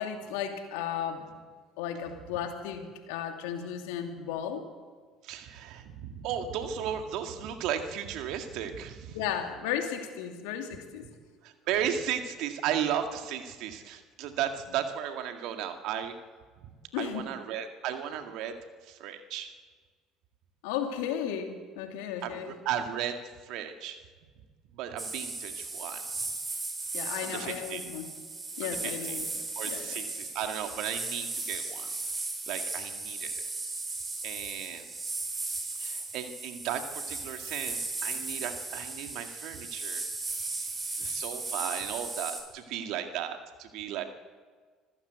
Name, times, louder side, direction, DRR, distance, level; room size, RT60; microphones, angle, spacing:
voice 1, 0.0-1.4 1.8-4.6 9.1-11.0 16.9-17.2 20.6-22.5 26.9-28.1 28.6-30.0, left 9 dB, 75° left, 4 dB, 2.7 m, -35 dB
voice 2, 5.2-9.2 11.4-16.2 17.0-18.5 18.8-19.5 22.2-24.0 24.7-26.0 27.2-27.8 28.6-29.2 29.6-31.9 32.5-33.5 34.2-34.8 35.8-40.0 41.0-44.0, right 9 dB, 70° right, 6 dB, 2.1 m, -35 dB
sound 1, 25.0-42.4, right 3 dB, 30° right, 6.1 m, -36 dB
26.0 x 15.0 x 8.2 m, 1.5 s
hypercardioid pair, 60°, 0 cm